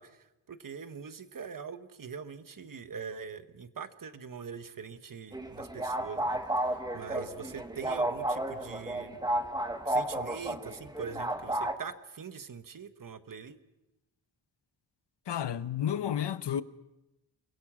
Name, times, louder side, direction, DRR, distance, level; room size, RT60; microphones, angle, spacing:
voice 1, 0.0-9.2 9.8-13.6, right 6 dB, 45° right, 1.3 m, -43 dB
sound 1, 5.3-11.7, right 1 dB, 10° right, 1.5 m, -32 dB
voice 2, 15.3-16.6, left 9 dB, 65° left, 1.0 m, -31 dB
28.5 x 22.0 x 6.3 m
wide cardioid pair, 160°, 44 cm